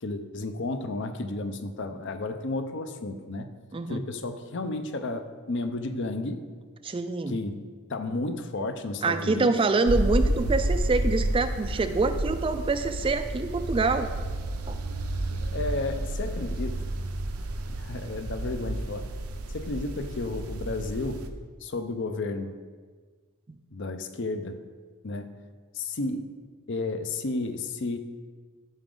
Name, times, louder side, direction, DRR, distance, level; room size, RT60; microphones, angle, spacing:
voice 1, 0.0-3.5 3.9-6.4 7.3-9.5 15.4-16.9 17.7-19.1 19.5-21.3 21.6-22.6 23.7-24.6 25.0-25.4 25.7-26.3 26.7-28.0, left 2 dB, 55° left, 9 dB, 0.6 m, -32 dB
voice 2, 3.7-4.1 6.8-7.4 9.0-14.1 14.7-14.8, right 3 dB, 25° right, 9 dB, 0.3 m, -26 dB
sound 1, 9.9-21.3, right 1 dB, 80° right, 0.7 m, -30 dB
13.5 x 5.0 x 3.8 m, 1.5 s
head